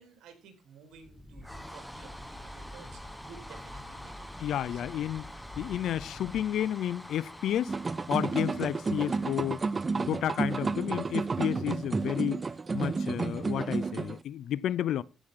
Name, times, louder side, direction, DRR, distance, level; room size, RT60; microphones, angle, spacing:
voice 1, 0.0-4.8, right 6 dB, 80° right, 3.2 m, -54 dB
sound 1, 0.9-11.4, equal, 5° left, 1.2 m, -46 dB
voice 2, 4.4-5.3 5.6-7.8 8.1-9.6 10.0-12.4 12.7-15.0, left 11 dB, 75° left, 0.4 m, -31 dB
sound 2, 7.7-14.2, right 4 dB, 30° right, 0.4 m, -31 dB
15.0 x 6.4 x 3.7 m
cardioid pair, 90°, 0 cm